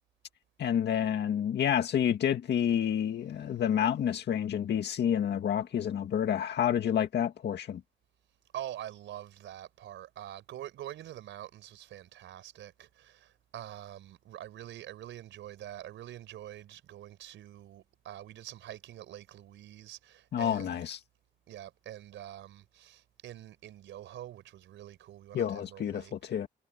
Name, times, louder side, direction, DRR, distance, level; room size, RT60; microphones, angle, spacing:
voice 1, 0.6-7.8 20.3-21.0 25.3-26.5, left 9 dB, 65° left, 2.0 m, -29 dB
voice 2, 8.5-20.9 21.5-26.1, right 12 dB, 90° right, 4.6 m, -45 dB
cardioid pair, 115°, 19 cm